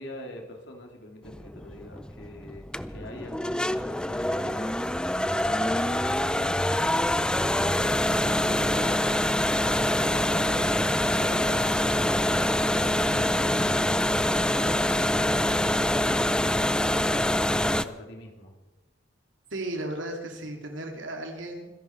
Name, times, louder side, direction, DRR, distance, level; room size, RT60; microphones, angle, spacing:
voice 1, 0.0-17.3 17.5-18.5, left 1 dB, 65° left, 2 dB, 3.2 m, -44 dB
sound 1, 1.3-17.8, left 1 dB, 5° left, 0.4 m, -25 dB
voice 2, 19.5-21.7, right 1 dB, 75° right, 3 dB, 3.0 m, -35 dB
25.5 x 11.0 x 4.7 m, 1.1 s
head